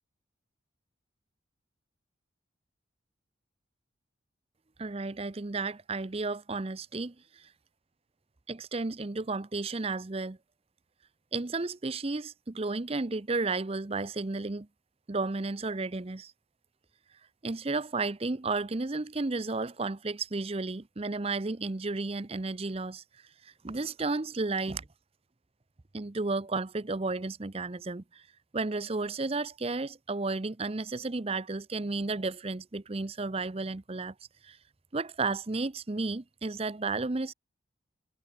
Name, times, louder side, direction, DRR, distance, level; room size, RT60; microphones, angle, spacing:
voice 1, 4.8-7.5 8.5-10.4 11.3-14.7 15.1-16.3 17.4-23.0 23.4-24.8 25.9-28.2 28.5-34.1 34.4-34.6 34.9-37.3, right 3 dB, 30° right, 0.6 m, -33 dB
head